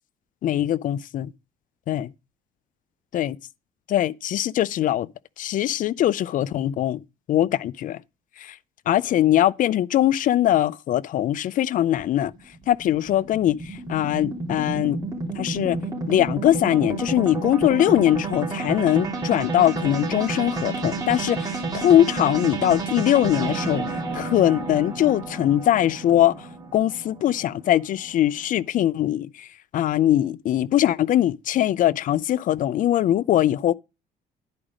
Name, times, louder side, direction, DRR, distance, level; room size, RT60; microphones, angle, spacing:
voice 1, 0.4-1.3 1.9-2.1 3.1-3.3 3.9-5.1 5.4-7.0 7.3-8.0 8.4-8.5 8.9-12.3 12.7-15.0 15.4-15.8 16.1-23.8 24.1-26.4 26.7-29.5 29.7-33.7, left 12 dB, 50° left, 0.4 m, -21 dB
sound 1, 12.0-28.4, right 3 dB, 20° right, 3.1 m, -31 dB
10.5 x 4.9 x 5.0 m
cardioid pair, 110°, 17 cm